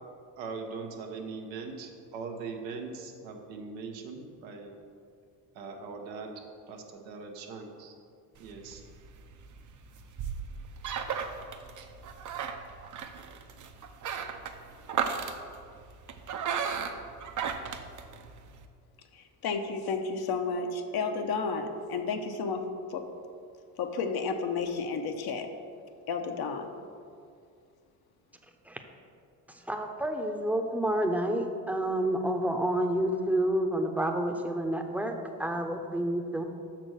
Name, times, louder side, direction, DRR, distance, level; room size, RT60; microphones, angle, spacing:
voice 1, 0.4-4.7 5.5-7.9 8.4-8.8, right 4 dB, 85° right, 2 dB, 1.0 m, -41 dB
Squeaky Chair, 8.4-18.6, right 6 dB, 45° right, 0.7 m, -36 dB
voice 2, 19.1-22.6 22.9-23.0 23.8-25.5 26.1-26.7, left 4 dB, 60° left, 5 dB, 0.9 m, -32 dB
voice 3, 29.5-35.1 35.4-36.4, right 1 dB, 5° right, 4 dB, 0.8 m, -29 dB
6.2 x 4.4 x 6.3 m, 2.3 s
supercardioid pair, 65°, 43 cm